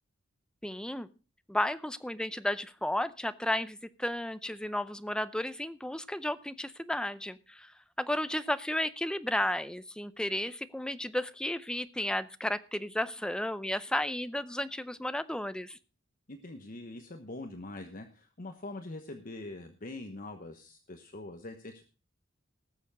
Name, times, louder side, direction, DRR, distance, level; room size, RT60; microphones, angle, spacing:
voice 1, 0.6-1.1 1.5-7.7 8.0-15.8, left 1 dB, 5° left, 13 dB, 0.6 m, -33 dB
voice 2, 16.3-21.8, left 2 dB, 45° left, 6 dB, 1.1 m, -43 dB
18.5 x 7.0 x 4.9 m, 0.35 s
head